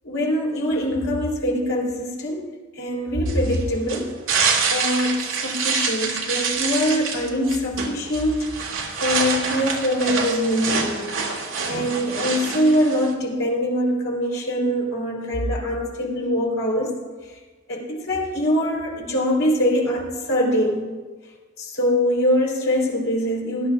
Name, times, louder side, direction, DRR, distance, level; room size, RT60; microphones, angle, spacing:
voice 1, 0.0-2.5 2.8-4.1 4.7-8.7 9.0-11.2 11.7-16.9 17.7-20.9 21.6-23.7, equal, 85° left, -2 dB, 4.0 m, -23 dB
sound 1, 3.3-13.1, right 5 dB, 75° right, 2.0 m, -26 dB
20.5 x 11.5 x 2.5 m, 1.4 s
head